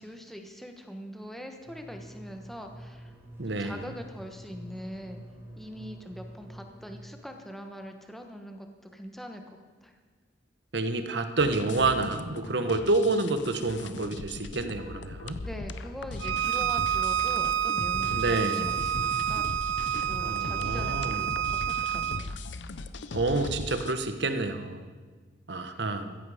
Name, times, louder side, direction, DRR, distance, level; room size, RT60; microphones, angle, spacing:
voice 1, 0.0-3.1 3.5-5.2 5.6-10.0 15.4-19.6 20.0-22.4 25.7-26.0, equal, ahead, 4 dB, 1.1 m, -43 dB
sound 1, 1.6-7.0, equal, 15° right, 4.0 m, -47 dB
voice 2, 3.4-3.8 10.7-15.4 18.1-18.7 20.2-21.2 23.1-24.9 25.5-26.2, right 2 dB, 70° right, 8 dB, 1.1 m, -28 dB
sound 2, 11.4-24.0, left 3 dB, 80° left, 0.7 m, -38 dB
Bowed string instrument, 16.2-22.2, right 10 dB, 85° right, 0.4 m, -29 dB
15.5 x 15.0 x 5.0 m, 1.4 s
head